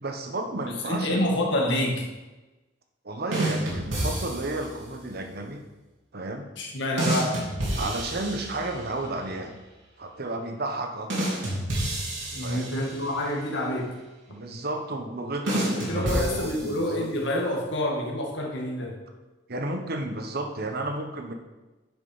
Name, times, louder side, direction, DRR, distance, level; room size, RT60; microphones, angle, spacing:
voice 1, 0.0-1.2 3.0-5.6 6.1-6.5 7.2-7.3 7.8-9.6 10.0-11.3 12.4-12.7 14.3-17.1 19.5-21.3, right 2 dB, 55° right, 4 dB, 1.2 m, -32 dB
voice 2, 0.8-2.1 6.6-7.4 12.3-13.9 15.7-19.0, left 1 dB, 65° left, -1 dB, 2.1 m, -27 dB
sound 1, 3.3-4.7 7.0-8.9 11.1-13.2 15.5-17.1, right 1 dB, 85° right, 3.4 m, -29 dB
10.0 x 6.0 x 5.6 m, 1.1 s
head